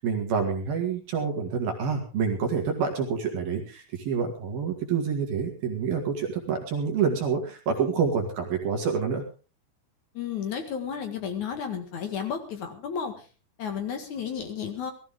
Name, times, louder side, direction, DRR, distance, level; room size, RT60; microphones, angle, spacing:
voice 1, 0.0-9.2, right 6 dB, 55° right, 2 dB, 3.5 m, -27 dB
voice 2, 10.1-13.3 13.6-14.9, left 7 dB, 55° left, 6 dB, 2.3 m, -32 dB
19.5 x 14.5 x 3.7 m, 0.35 s
omnidirectional pair, 5.9 m